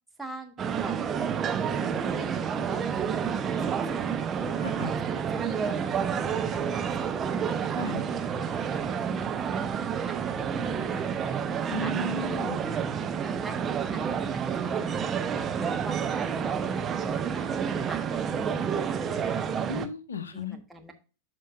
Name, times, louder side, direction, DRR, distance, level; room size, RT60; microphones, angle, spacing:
voice 1, 0.2-2.3 2.6-4.0 4.4-6.2 6.5-7.1 7.4-9.6 10.1-11.2 11.7-11.9 12.3-12.8 13.2-14.9 15.2-18.0 18.4-19.2 20.3-20.9, right 2 dB, 5° right, 3 dB, 1.3 m, -43 dB
sound 1, 0.6-19.9, right 7 dB, 25° right, 0.8 m, -29 dB
voice 2, 4.6-4.9 7.8-8.0 11.7-12.6 19.7-20.6, left 3 dB, 70° left, 12 dB, 0.8 m, -35 dB
12.0 x 4.6 x 2.4 m, 0.32 s
figure-of-eight pair, 90°, 0 cm